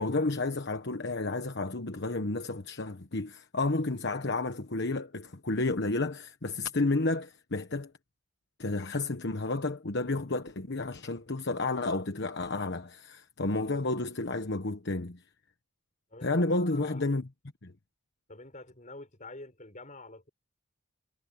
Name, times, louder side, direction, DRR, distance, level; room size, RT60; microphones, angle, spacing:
voice 1, 0.0-7.9 8.6-15.2 16.2-17.3 17.6-17.7, left 2 dB, 55° left, 1.2 m, -31 dB
voice 2, 16.1-17.1 18.3-20.3, left 2 dB, 35° left, 6.7 m, -47 dB
head